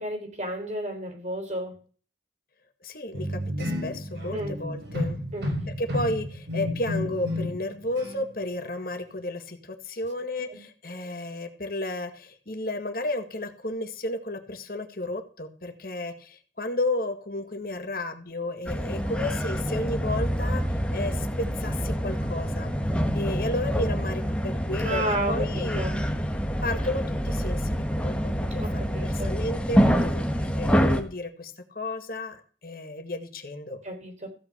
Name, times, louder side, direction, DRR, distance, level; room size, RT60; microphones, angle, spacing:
voice 1, 0.0-1.7 4.3-4.6 5.3-5.5 10.5-10.6 24.8-26.0 28.6-29.3 33.8-34.3, right 1 dB, 40° right, 4 dB, 3.9 m, -32 dB
voice 2, 2.8-5.2 5.8-20.6 20.9-22.7 23.1-25.8 26.6-28.1 28.5-33.8, left 2 dB, 50° left, 6 dB, 1.7 m, -33 dB
sound 1, 3.1-7.7 8.0-8.3, left 1 dB, 70° right, 4.4 m, -31 dB
sound 2, 18.7-31.0, equal, 5° left, 1.4 m, -26 dB
15.5 x 5.8 x 8.0 m, 0.40 s
head